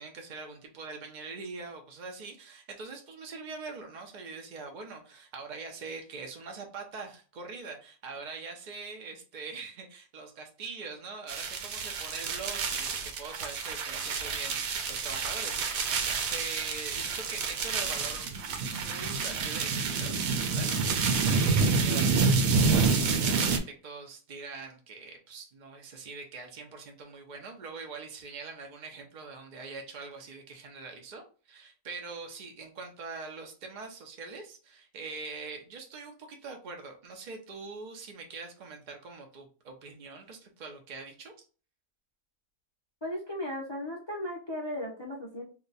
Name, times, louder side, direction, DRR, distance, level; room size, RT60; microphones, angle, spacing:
voice 1, 0.0-18.3 18.6-20.7 21.3-41.3, right 4 dB, 90° right, 2 dB, 0.4 m, -43 dB
sound 1, 11.3-23.6, right 4 dB, 70° right, 1.0 m, -28 dB
voice 2, 43.0-45.4, left 1 dB, 40° left, -3 dB, 0.3 m, -36 dB
2.8 x 2.2 x 4.0 m, 0.37 s
omnidirectional pair, 1.7 m